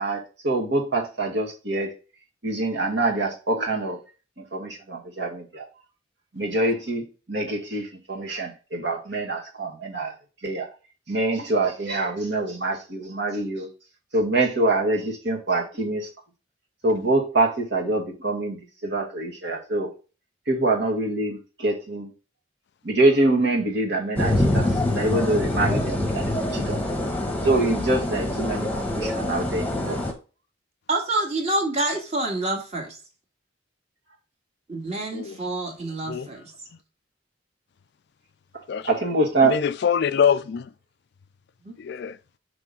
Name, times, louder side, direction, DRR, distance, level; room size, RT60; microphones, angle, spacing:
voice 1, 0.0-1.9 2.4-4.0 4.4-5.6 6.3-10.1 10.4-10.7 11.1-13.7 14.1-16.1 16.8-19.9 20.5-22.1 22.8-24.7 24.9-27.0 27.4-30.0 38.9-39.5, right 2 dB, 60° right, 1.8 m, -25 dB
sound 1, 24.2-30.1, left 1 dB, 10° left, 1.1 m, -25 dB
voice 2, 30.9-33.0 34.7-36.4 41.6-41.8, right 2 dB, 35° right, 1.9 m, -27 dB
voice 3, 39.4-40.7 41.8-42.2, left 7 dB, 55° left, 0.3 m, -24 dB
6.0 x 3.3 x 5.4 m
head